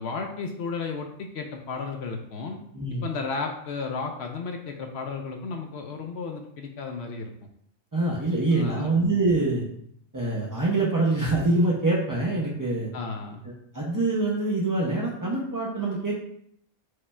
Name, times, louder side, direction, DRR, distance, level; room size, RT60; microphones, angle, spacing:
voice 1, 0.0-2.6 3.0-7.3 8.5-8.9 12.9-13.4, left 4 dB, 65° left, 4 dB, 0.7 m, -33 dB
voice 2, 7.9-9.7 10.1-12.9 13.7-16.2, right 2 dB, 30° right, -5 dB, 0.3 m, -25 dB
4.8 x 2.3 x 4.2 m, 0.69 s
omnidirectional pair, 1.4 m